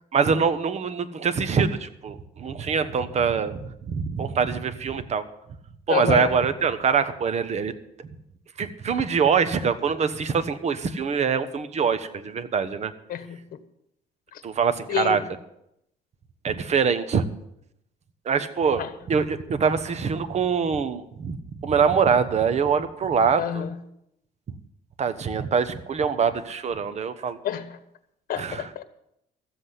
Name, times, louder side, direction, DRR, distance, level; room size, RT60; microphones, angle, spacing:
voice 1, 0.1-5.2 5.9-7.7 8.0-8.1 8.6-12.9 14.4-15.2 16.4-17.2 18.2-23.6 25.0-27.4 28.4-28.6, right 6 dB, 40° right, 11 dB, 1.1 m, -24 dB
voice 2, 5.9-6.4 13.1-13.4 14.3-14.4 14.9-15.2 18.8-18.9 23.4-23.8 27.4-27.8 28.3-28.8, left 9 dB, 60° left, 10 dB, 1.5 m, -28 dB
14.0 x 7.8 x 8.2 m, 0.79 s
cardioid pair, 110°, 17 cm